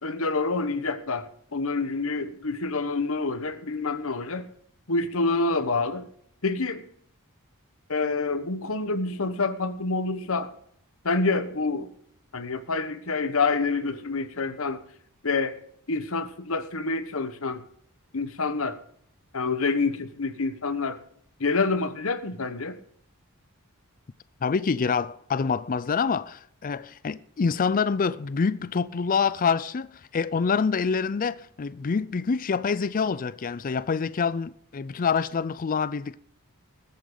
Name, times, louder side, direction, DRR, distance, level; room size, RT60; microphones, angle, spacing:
voice 1, 0.0-4.5 4.9-6.1 6.4-6.8 7.9-10.5 11.0-11.9 12.3-14.8 15.2-15.5 15.9-17.6 18.1-18.8 19.3-21.0 21.4-22.8, left 3 dB, 65° left, 1.2 m, -27 dB
voice 2, 24.4-36.2, left 5 dB, 40° left, 0.4 m, -26 dB
21.0 x 8.6 x 3.9 m
head